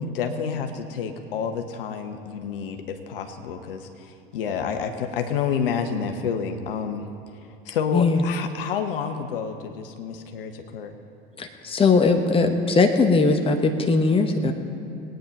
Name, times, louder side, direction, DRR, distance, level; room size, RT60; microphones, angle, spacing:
voice 1, 0.0-7.1 7.6-10.9, left 7 dB, 65° left, 6 dB, 1.2 m, -29 dB
voice 2, 7.9-8.2 11.4-14.5, left 3 dB, 20° left, 5 dB, 1.2 m, -20 dB
20.5 x 9.2 x 5.4 m, 2.5 s
figure-of-eight pair, 80°, 30 cm